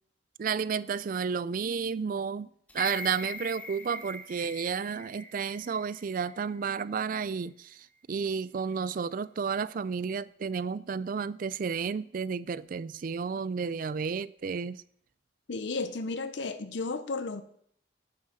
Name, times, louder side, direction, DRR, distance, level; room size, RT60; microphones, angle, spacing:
voice 1, 0.4-14.8, right 6 dB, 45° right, 0.3 m, -32 dB
sound 1, 2.7-6.8 7.2-7.3, left 3 dB, 10° left, 1.2 m, -42 dB
voice 2, 15.5-17.4, left 3 dB, 70° left, 0.7 m, -33 dB
9.6 x 6.1 x 6.3 m
head